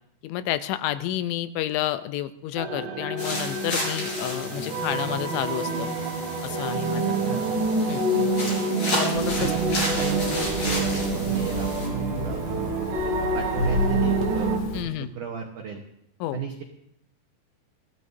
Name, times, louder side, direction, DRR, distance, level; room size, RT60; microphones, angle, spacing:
voice 1, 0.2-5.9 6.4-7.2 7.9-8.1 9.0-9.5 14.7-15.1 16.2-16.4, left 13 dB, 90° left, 12 dB, 3.1 m, -30 dB
sound 1, 2.6-14.6, right 3 dB, 65° right, 4.1 m, -27 dB
sound 2, 3.2-11.9, left 1 dB, 40° left, 5.4 m, -33 dB
voice 2, 7.2-7.6 8.2-8.4 9.4-12.9 13.3-15.8 16.3-16.6, right 7 dB, 85° right, 2 dB, 1.8 m, -34 dB
sound 3, 9.1-14.8, left 2 dB, 65° left, 3.5 m, -32 dB
23.0 x 15.5 x 2.7 m, 0.74 s
omnidirectional pair, 5.3 m